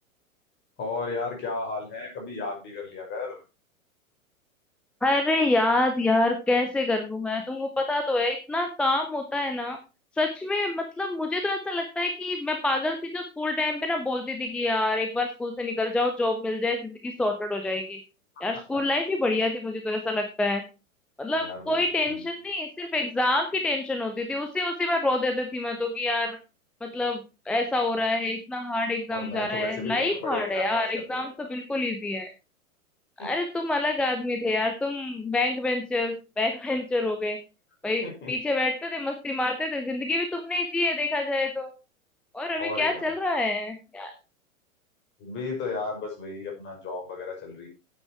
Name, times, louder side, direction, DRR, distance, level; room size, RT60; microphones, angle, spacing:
voice 1, 0.8-3.4 18.4-18.5 21.3-21.8 22.1-22.2 29.1-31.5 33.2-33.3 38.0-38.3 42.6-43.2 45.2-47.7, left 3 dB, 25° left, 1 dB, 5.6 m, -34 dB
voice 2, 5.0-9.8 10.2-18.0 18.4-20.6 21.2-26.4 26.8-32.3 33.2-37.4 37.8-41.7 42.3-44.1, left 2 dB, 5° left, 5 dB, 0.4 m, -27 dB
9.5 x 8.3 x 4.6 m, 0.30 s
figure-of-eight pair, 100°, 42 cm